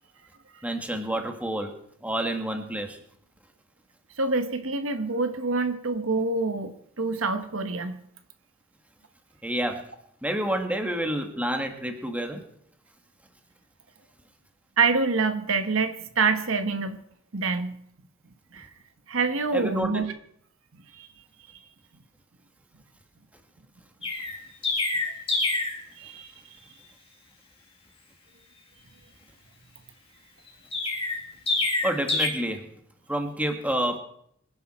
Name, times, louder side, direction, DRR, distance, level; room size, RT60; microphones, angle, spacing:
voice 1, 0.6-3.0 9.4-9.8 10.2-12.4 19.5-20.0 31.8-32.7 33.1-34.0, right 1 dB, 5° right, 4 dB, 1.8 m, -29 dB
voice 2, 4.2-8.0 14.8-17.0 17.3-17.8 18.5-18.7 19.1-20.1 20.9-21.1 26.0-26.3, right 4 dB, 70° right, 8 dB, 1.2 m, -26 dB
Chirp tweet, 24.0-25.8 30.7-32.3, left 3 dB, 30° left, 4.0 m, -26 dB
24.5 x 10.5 x 4.4 m, 0.70 s
head